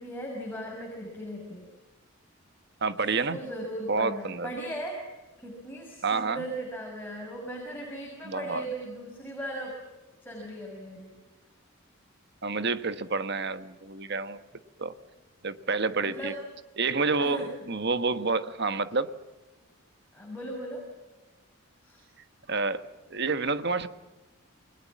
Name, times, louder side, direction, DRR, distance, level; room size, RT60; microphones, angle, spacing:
voice 1, 0.0-1.7 3.3-5.1 5.4-9.7 10.2-11.1 16.0-16.4 17.2-17.5 20.1-20.8 21.8-22.0, right 1 dB, 10° left, -1 dB, 6.3 m, -38 dB
voice 2, 2.8-3.4 3.9-4.5 6.0-6.4 8.2-8.6 12.4-14.4 14.8-14.9 15.4-16.3 16.8-19.1 22.5-22.8 23.1-23.9, right 4 dB, 50° right, 11 dB, 1.3 m, -28 dB
29.5 x 22.0 x 7.4 m, 1.1 s
head